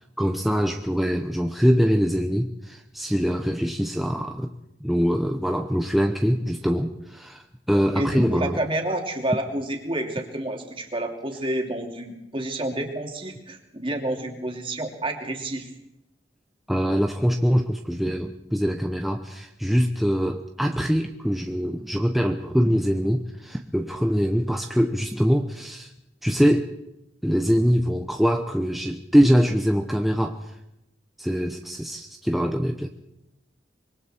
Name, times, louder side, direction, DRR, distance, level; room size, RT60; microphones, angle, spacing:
voice 1, 0.2-4.5 4.8-8.6 16.7-25.9 26.2-26.7 27.2-30.4 31.2-32.9, equal, ahead, 3 dB, 0.8 m, -23 dB
voice 2, 7.9-15.7, right 1 dB, 30° right, 2 dB, 3.0 m, -29 dB
25.0 x 23.0 x 4.5 m, 0.87 s
head